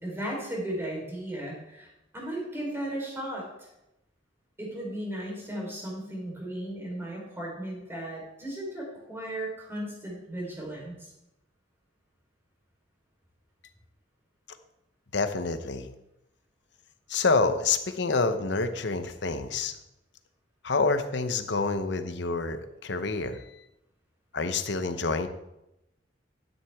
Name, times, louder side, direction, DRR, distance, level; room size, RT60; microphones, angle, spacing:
voice 1, 0.0-3.7 4.6-11.1, right 1 dB, 15° right, -3 dB, 3.9 m, -36 dB
voice 2, 15.1-15.9 17.1-19.7 20.6-23.5 24.3-25.3, left 4 dB, 65° left, 9 dB, 0.9 m, -27 dB
12.0 x 9.8 x 3.6 m, 0.88 s
head